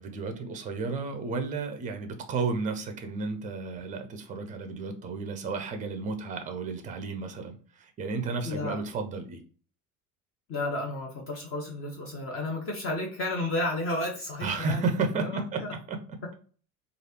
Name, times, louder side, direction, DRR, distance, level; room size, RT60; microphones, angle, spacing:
voice 1, 0.0-9.4 14.4-15.6 15.9-16.0, right 4 dB, 20° right, 7 dB, 0.5 m, -32 dB
voice 2, 8.4-8.8 10.5-15.7, left 2 dB, 30° left, 0 dB, 0.8 m, -32 dB
3.2 x 2.5 x 2.8 m, 0.41 s
figure-of-eight pair, 70°, 43 cm